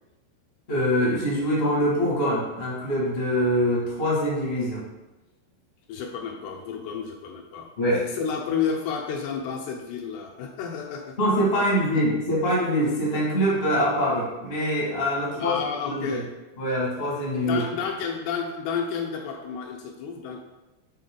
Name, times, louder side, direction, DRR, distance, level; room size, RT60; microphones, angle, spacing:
voice 1, 0.7-4.8 7.8-8.0 11.2-15.6 15.8-16.2 16.6-17.6, equal, 40° left, -6 dB, 0.8 m, -24 dB
voice 2, 5.9-11.2 11.9-12.0 15.3-16.3 17.4-20.4, left 6 dB, 80° left, 2 dB, 2.5 m, -31 dB
7.6 x 4.1 x 3.9 m, 1.0 s
omnidirectional pair, 5.0 m